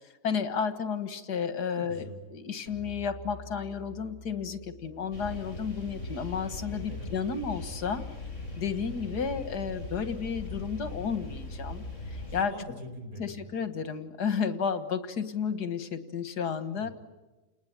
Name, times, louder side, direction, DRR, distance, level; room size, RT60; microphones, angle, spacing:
voice 1, 0.2-8.1 8.6-12.5 13.2-16.9, left 6 dB, 85° left, 10 dB, 2.2 m, -32 dB
voice 2, 1.7-2.2 6.9-7.1 12.3-13.4 16.8-16.9, equal, 60° right, 4 dB, 5.4 m, -43 dB
sound 1, 2.7-7.0, equal, 65° left, 2.3 m, -49 dB
sound 2, 5.1-12.5, left 2 dB, 50° left, 7.3 m, -40 dB
30.0 x 20.5 x 8.8 m, 1.2 s
omnidirectional pair, 1.7 m